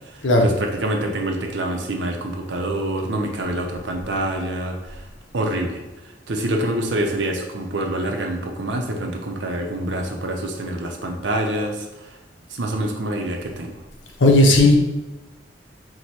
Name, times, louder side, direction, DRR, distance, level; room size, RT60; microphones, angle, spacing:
voice 1, 0.1-5.0 5.3-5.8 6.3-11.9 12.5-13.8, right 1 dB, 70° right, 3 dB, 0.7 m, -26 dB
voice 2, 14.2-14.8, left 1 dB, 90° left, 1 dB, 0.8 m, -14 dB
4.7 x 2.2 x 4.2 m, 1.1 s
head